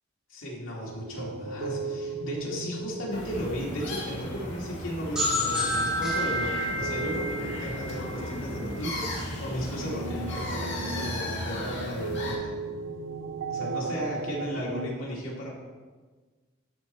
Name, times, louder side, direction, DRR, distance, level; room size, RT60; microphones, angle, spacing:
voice 1, 0.3-12.5 13.5-15.5, equal, 90° left, -4 dB, 2.5 m, -35 dB
sound 1, 0.8-14.9, right 4 dB, 70° right, 0.5 m, -37 dB
sound 2, 3.1-12.3, left 1 dB, 65° left, 2.3 m, -36 dB
sound 3, 5.2-8.8, left 1 dB, 5° right, 2.0 m, -30 dB
12.0 x 4.3 x 4.6 m, 1.4 s
head